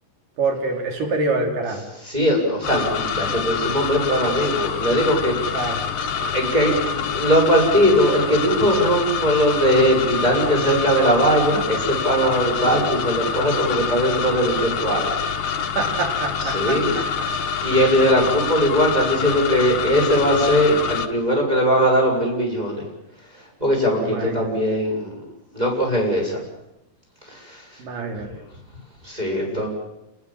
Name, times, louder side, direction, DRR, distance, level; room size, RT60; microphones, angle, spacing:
voice 1, 0.4-1.8 5.5-5.8 15.8-17.0 24.0-24.5 27.8-28.3 29.5-29.7, right 3 dB, 80° right, 3 dB, 4.4 m, -26 dB
voice 2, 2.0-5.7 6.2-15.1 16.4-17.0 17.6-22.8 23.6-25.1 25.5-26.4 27.3-27.6 29.0-29.7, equal, 10° right, 0 dB, 7.2 m, -20 dB
sound 1, 2.6-21.1, left 6 dB, 55° left, 1.9 m, -26 dB
29.5 x 20.5 x 7.6 m, 0.89 s
omnidirectional pair, 3.8 m